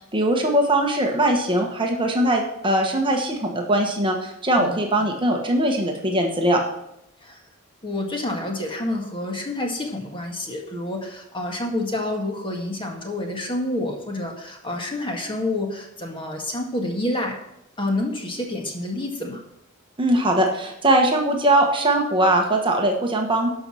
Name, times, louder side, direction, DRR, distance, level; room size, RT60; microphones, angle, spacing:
voice 1, 0.1-6.6 20.0-23.5, right 1 dB, 25° right, 2 dB, 1.3 m, -21 dB
voice 2, 7.8-17.4 17.8-19.4, left 1 dB, 25° left, 1 dB, 1.8 m, -28 dB
11.5 x 5.6 x 6.3 m, 0.81 s
head